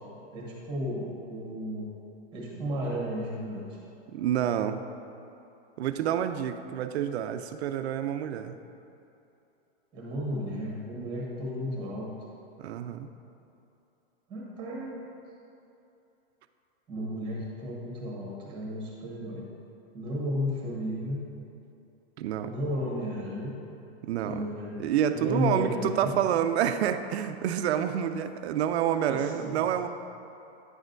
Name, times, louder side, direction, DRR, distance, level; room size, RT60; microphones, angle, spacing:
voice 1, 0.3-1.9 2.3-3.6 9.9-12.1 14.3-15.1 16.9-19.4 19.9-21.2 22.5-23.6 24.2-24.8 25.1-26.1 29.0-29.6, equal, 15° right, -4 dB, 1.1 m, -33 dB
voice 2, 4.1-4.8 5.8-8.6 12.6-13.1 22.2-22.5 24.0-24.5 24.8-29.9, right 9 dB, 90° right, 10 dB, 0.5 m, -28 dB
9.5 x 6.2 x 2.6 m, 2.8 s
supercardioid pair, 180°, 32 cm